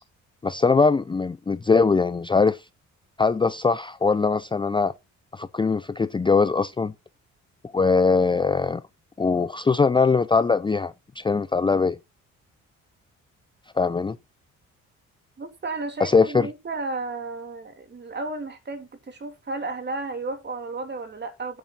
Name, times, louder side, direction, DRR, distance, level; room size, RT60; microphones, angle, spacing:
voice 1, 0.4-2.6 3.2-4.9 5.3-6.9 7.7-8.8 9.2-12.0 13.8-14.2 16.0-16.5, left 4 dB, 15° left, 0.5 m, -21 dB
voice 2, 15.4-21.6, right 3 dB, 35° right, 3.0 m, -33 dB
8.9 x 8.6 x 4.0 m
cardioid pair, 90°, 30 cm